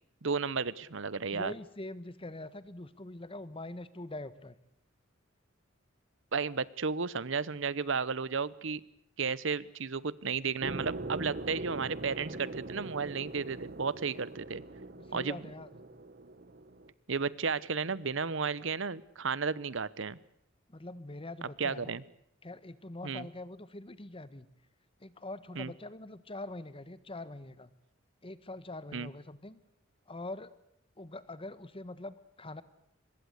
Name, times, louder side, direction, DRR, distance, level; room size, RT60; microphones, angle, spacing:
voice 1, 0.2-1.5 6.3-8.8 9.2-14.6 15.1-15.4 17.1-20.2 21.6-22.0 23.0-23.3 25.6-25.7 28.9-29.1, right 5 dB, 70° right, 19 dB, 0.9 m, -33 dB
voice 2, 1.3-4.6 14.9-15.8 20.7-22.0 22.4-24.5 25.0-27.7 28.2-29.6 30.1-30.5 31.0-32.6, left 2 dB, 30° left, 15 dB, 1.4 m, -44 dB
sound 1, 10.6-16.9, right 2 dB, 50° right, 1.3 m, -42 dB
24.5 x 21.0 x 8.1 m, 0.73 s
head